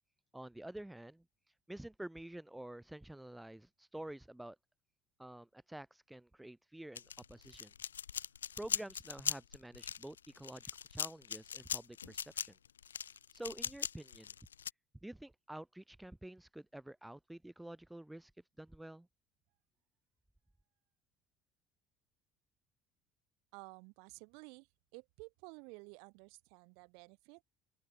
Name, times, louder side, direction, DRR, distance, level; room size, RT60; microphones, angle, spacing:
voice 1, 0.3-1.2 1.7-4.6 5.2-7.7 8.6-12.6 13.3-14.3 15.0-18.3 18.6-19.1, right 1 dB, 5° right, 1.9 m, -49 dB
sound 1, 7.0-14.7, left 8 dB, 80° left, 1.5 m, -40 dB
voice 2, 23.5-24.7 24.9-27.4, right 35 dB, 65° right, 4.4 m, -53 dB
open air
figure-of-eight pair, 60°, 0 cm